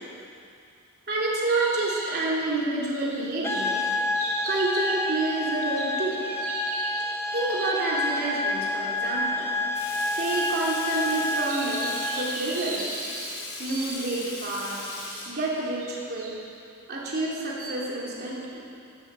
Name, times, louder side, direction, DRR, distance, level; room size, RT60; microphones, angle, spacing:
voice 1, 1.1-3.8 4.5-6.2 7.3-9.5 10.2-12.9 13.6-14.9 15.3-16.5 16.9-18.7, right 2 dB, 50° right, -5 dB, 3.2 m, -29 dB
sound 1, 1.5-8.5 9.4-9.5 10.8-14.5 15.1-15.2 15.8-16.4 17.1-17.9, right 3 dB, 80° right, 3.0 m, -38 dB
sound 2, 3.4-12.4, left 1 dB, 10° left, 1.0 m, -29 dB
Water tap faucet / Sink (filling or washing), 9.7-15.6, left 2 dB, 85° left, 4.9 m, -38 dB
13.5 x 13.0 x 8.2 m, 2.4 s
head